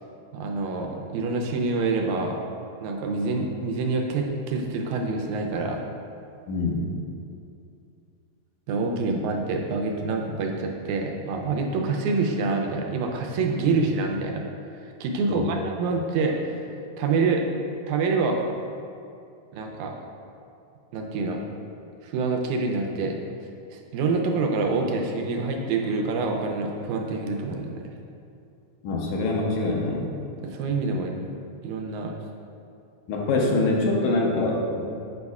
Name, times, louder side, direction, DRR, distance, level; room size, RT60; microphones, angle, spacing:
voice 1, 0.3-2.4 2.8-5.8 8.7-14.4 15.0-16.7 17.0-17.4 17.9-18.4 19.5-20.0 20.9-21.4 22.0-23.2 23.7-27.8 30.4-31.2 31.6-32.1, right 3 dB, 85° right, 2 dB, 2.0 m, -26 dB
voice 2, 6.5-6.8 15.3-15.4 28.8-30.1 33.1-34.8, left 2 dB, 85° left, -1 dB, 2.1 m, -24 dB
8.3 x 5.2 x 2.4 m, 2.5 s
omnidirectional pair, 3.3 m